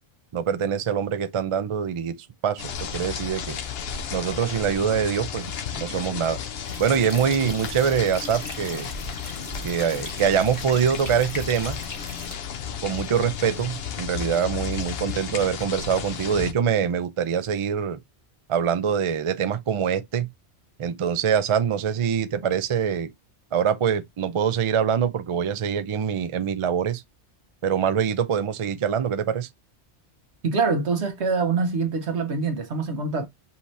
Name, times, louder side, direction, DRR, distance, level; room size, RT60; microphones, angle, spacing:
voice 1, 0.3-2.1 2.4-3.6 4.1-6.4 6.8-8.9 9.6-11.8 12.8-18.0 18.5-20.3 20.8-23.1 23.5-27.0 27.6-29.5, right 7 dB, 50° right, 0.3 m, -24 dB
sound 1, 2.6-16.5, left 8 dB, 65° left, 0.9 m, -33 dB
sound 2, 6.7-12.3, left 2 dB, 20° left, 1.2 m, -38 dB
voice 2, 30.4-33.3, right 4 dB, 80° right, 1.4 m, -24 dB
5.6 x 2.8 x 3.1 m
omnidirectional pair, 1.1 m